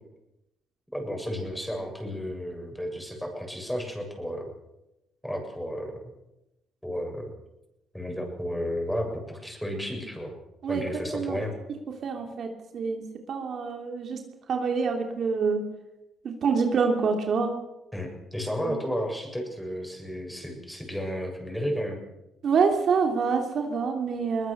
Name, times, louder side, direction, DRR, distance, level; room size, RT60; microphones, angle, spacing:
voice 1, 0.9-4.5 5.2-5.9 6.8-7.3 7.9-10.3 10.7-11.5 17.9-22.0, equal, 5° left, 2 dB, 7.7 m, -32 dB
voice 2, 12.0-13.0 13.3-14.2 14.5-15.6 16.2-17.5 18.7-18.8 22.4-24.5, right 5 dB, 60° right, 3 dB, 3.1 m, -26 dB
22.0 x 19.5 x 6.9 m, 0.93 s
cardioid pair, 90°, 0 cm